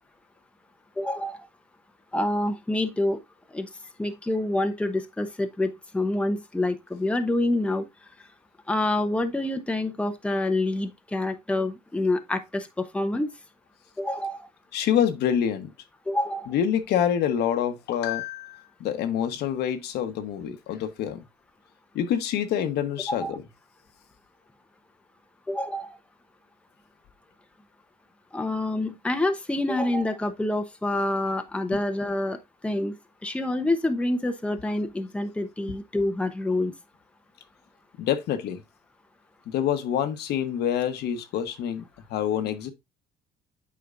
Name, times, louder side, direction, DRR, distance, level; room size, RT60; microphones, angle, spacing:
voice 1, 1.0-1.5 2.1-3.2 3.5-3.7 4.0-7.8 8.7-13.3 14.0-14.5 16.1-16.5 23.1-23.4 25.5-26.0 28.3-32.4 32.6-32.9 33.2-36.7, left 1 dB, 5° left, 0.8 m, -27 dB
voice 2, 14.7-15.7 16.5-21.2 21.9-23.4 38.0-38.6 39.5-41.8 42.1-42.7, left 9 dB, 75° left, 1.1 m, -26 dB
8.5 x 5.1 x 2.5 m
cardioid pair, 110°, 17 cm